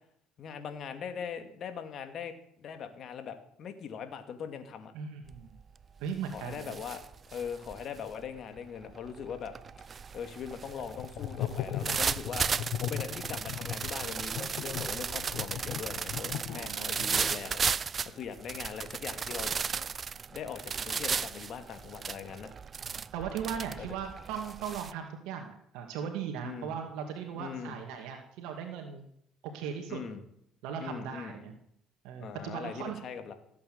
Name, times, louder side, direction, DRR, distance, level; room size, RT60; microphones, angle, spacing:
voice 1, 0.4-4.9 6.3-7.0 7.3-9.5 10.1-12.5 12.8-19.5 20.3-22.5 23.8-23.9 26.4-26.7 27.4-27.8 29.9-30.2 30.8-31.6 32.2-33.3, left 7 dB, 55° left, 8 dB, 2.4 m, -41 dB
voice 2, 4.9-5.5 6.0-6.7 11.8-12.0 16.5-17.4 22.8-29.0 29.5-30.0 30.6-31.5 32.0-33.0, right 7 dB, 80° right, 4 dB, 2.2 m, -38 dB
sound 1, 5.3-5.6 6.0-24.9, right 6 dB, 35° right, 0.6 m, -35 dB
sound 2, 10.9-17.0, left 11 dB, 70° left, 1.3 m, -37 dB
16.5 x 8.6 x 8.0 m, 0.71 s
supercardioid pair, 90°, 0 cm